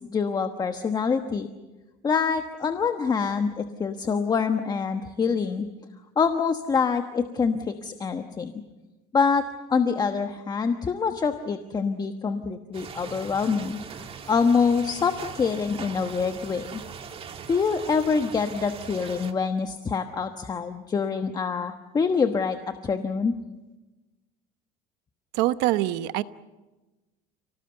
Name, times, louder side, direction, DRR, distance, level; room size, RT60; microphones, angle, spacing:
voice 1, 0.0-1.5 2.0-5.6 6.2-8.5 9.1-9.4 9.7-16.8 17.5-22.6 22.8-23.3, left 5 dB, 25° left, 7 dB, 1.2 m, -25 dB
sound 1, 12.7-19.3, right 6 dB, 35° right, 1.9 m, -40 dB
voice 2, 25.3-26.2, right 15 dB, 80° right, 13 dB, 1.0 m, -24 dB
30.0 x 18.5 x 8.0 m, 1.1 s
cardioid pair, 135°, 17 cm